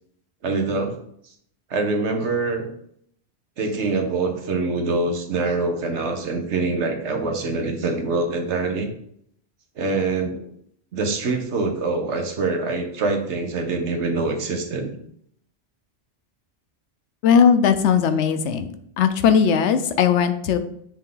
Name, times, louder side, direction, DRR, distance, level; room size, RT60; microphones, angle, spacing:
voice 1, 0.4-0.9 1.7-2.7 3.6-8.9 9.8-10.5 10.9-14.9, right 3 dB, 80° right, 4 dB, 1.3 m, -24 dB
voice 2, 17.2-18.7 19.0-20.6, left 7 dB, 85° left, 10 dB, 0.9 m, -18 dB
7.2 x 3.5 x 3.8 m, 0.69 s
omnidirectional pair, 1.1 m